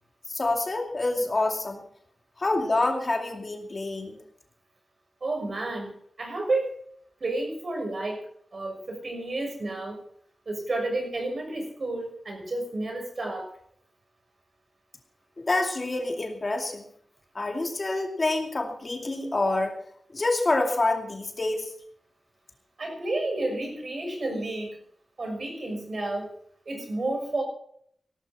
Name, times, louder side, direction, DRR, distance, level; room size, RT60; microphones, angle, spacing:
voice 1, 0.3-1.8 2.4-4.2 15.4-16.9 17.3-19.8 20.1-21.7, left 2 dB, 35° left, 3 dB, 2.5 m, -27 dB
voice 2, 5.2-5.9 6.2-6.7 7.2-8.2 8.5-10.0 10.5-13.5 22.8-24.7 25.2-26.3 26.7-27.4, right 2 dB, 50° right, 3 dB, 6.3 m, -31 dB
18.0 x 12.5 x 4.4 m, 0.64 s
wide cardioid pair, 120°, 0 cm